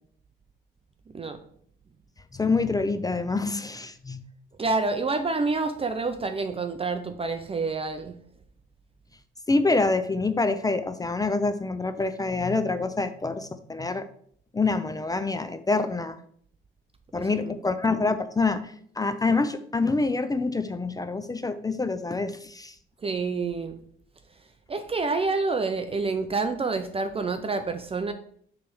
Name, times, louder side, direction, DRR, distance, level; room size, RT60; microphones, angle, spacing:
voice 1, 2.3-4.2 9.5-14.0 14.5-16.2 17.1-22.7, left 3 dB, 20° left, 11 dB, 0.5 m, -26 dB
voice 2, 4.6-8.2 17.2-17.5 23.0-23.8 24.7-28.1, right 3 dB, 30° right, 8 dB, 0.6 m, -28 dB
6.8 x 3.3 x 6.1 m, 0.62 s
cardioid pair, 90°, 20 cm